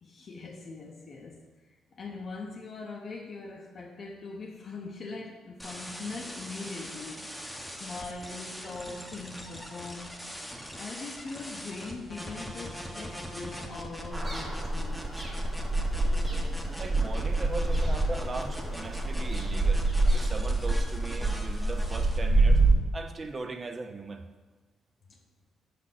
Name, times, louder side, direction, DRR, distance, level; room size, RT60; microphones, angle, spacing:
voice 1, 0.0-7.3 7.7-10.2 10.8-15.0 25.1-25.2, left 3 dB, 45° left, 0.6 m, -41 dB
sound 1, 5.6-22.2, equal, ahead, 0.9 m, -41 dB
sound 2, 14.1-22.7, right 2 dB, 20° right, 1.9 m, -26 dB
voice 2, 16.8-19.8 20.1-22.6 22.9-24.2, right 3 dB, 35° right, 0.5 m, -38 dB
6.0 x 4.3 x 5.7 m
cardioid pair, 90°, 0 cm